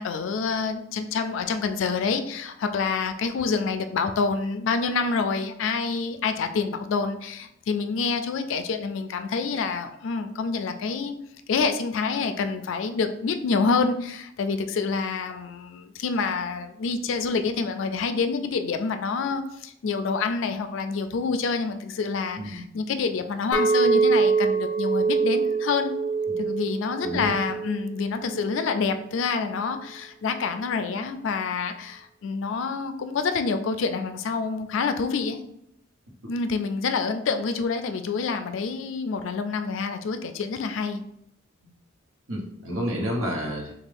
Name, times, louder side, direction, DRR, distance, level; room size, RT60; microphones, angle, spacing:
voice 1, 0.0-11.2 11.5-26.0 26.4-35.4 36.3-41.0, left 4 dB, 70° left, 8 dB, 0.3 m, -27 dB
Chink clink, 23.5-28.7, right 4 dB, 20° right, 0.5 m, -24 dB
voice 2, 27.0-27.3 42.3-43.7, equal, 85° right, -2 dB, 1.0 m, -30 dB
3.4 x 2.4 x 3.3 m, 0.77 s
head